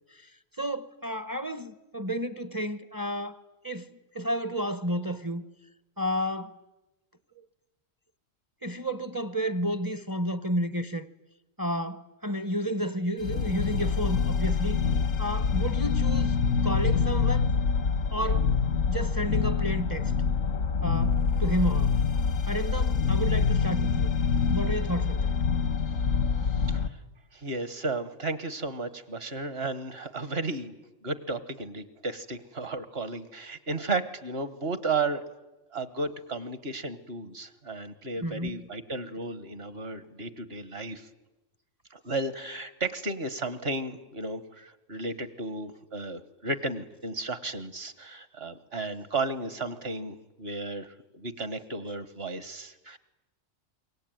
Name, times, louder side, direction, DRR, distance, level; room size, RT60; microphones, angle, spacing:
voice 1, 0.6-5.4 6.0-6.6 7.4-7.5 8.6-11.1 11.6-14.8 15.2-16.4 16.6-17.5 18.1-18.6 18.9-20.1 20.8-22.0 22.5-24.1 24.5-25.3 38.2-38.6, equal, 20° right, 0.8 m, -31 dB
sound 1, 13.2-26.9, left 5 dB, 80° left, 1.5 m, -26 dB
voice 2, 26.4-27.0 27.3-30.7 31.0-35.2 35.7-41.1 41.9-53.0, right 3 dB, 50° right, 1.6 m, -34 dB
26.5 x 23.5 x 9.3 m
omnidirectional pair, 1.4 m